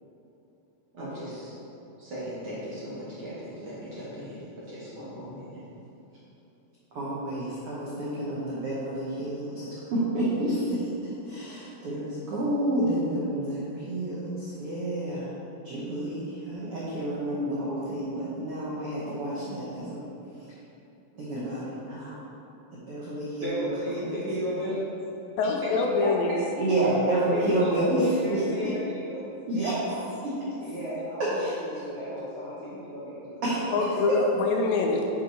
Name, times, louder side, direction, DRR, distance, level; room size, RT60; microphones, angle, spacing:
voice 1, 0.9-1.5 2.0-5.6 23.4-24.7 25.9-26.1 27.3-29.2 30.6-31.5 31.7-33.4, equal, 45° right, -10 dB, 1.9 m, -35 dB
voice 2, 6.9-15.3 15.6-20.0 20.3-20.4 21.1-22.2 22.7-24.2 24.7-24.8 26.6-28.4 29.5-29.8 30.2-30.4 31.2-31.5 33.4-34.2, right 1 dB, 80° right, -8 dB, 1.3 m, -29 dB
voice 3, 25.4-26.4 33.7-35.1, left 4 dB, 80° left, 1 dB, 2.3 m, -25 dB
9.2 x 4.7 x 4.1 m, 2.8 s
omnidirectional pair, 4.3 m